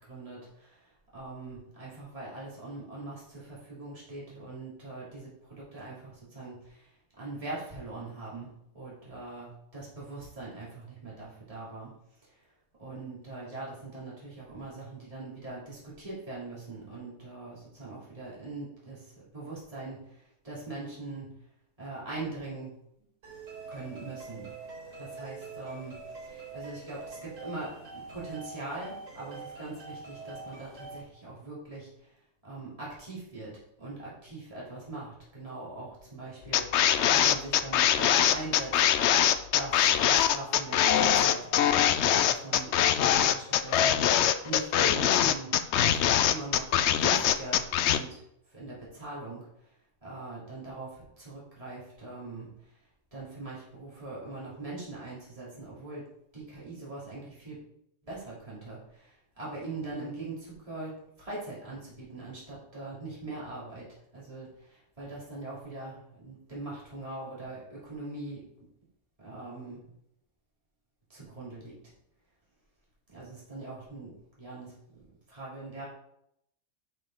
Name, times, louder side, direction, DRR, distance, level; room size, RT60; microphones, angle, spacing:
voice 1, 0.1-6.9 7.2-11.9 12.2-12.4 12.8-21.3 21.8-22.8 23.7-24.5 25.0-32.1 32.4-39.2 39.5-42.7 43.0-45.6 46.0-48.2 48.5-49.5 50.0-52.5 53.1-57.6 58.0-63.9 64.1-68.4 69.2-69.8 71.1-71.7 73.1-74.1 74.4-75.9, right 2 dB, 25° right, -7 dB, 3.0 m, -42 dB
sound 1, 23.2-31.0, right 3 dB, 90° right, 4.1 m, -44 dB
sound 2, 36.5-48.0, left 10 dB, 65° left, 0.8 m, -23 dB
10.5 x 5.3 x 3.8 m, 0.77 s
omnidirectional pair, 1.3 m